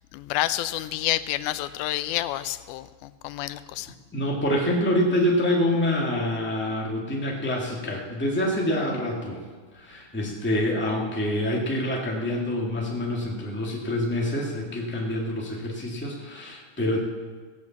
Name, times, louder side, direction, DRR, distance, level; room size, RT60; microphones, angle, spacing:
voice 1, 0.1-3.9, left 14 dB, 90° left, 14 dB, 2.1 m, -29 dB
voice 2, 4.1-9.4 9.7-17.0, left 1 dB, 5° left, -1 dB, 1.3 m, -26 dB
16.5 x 8.5 x 7.2 m, 1.5 s
omnidirectional pair, 3.5 m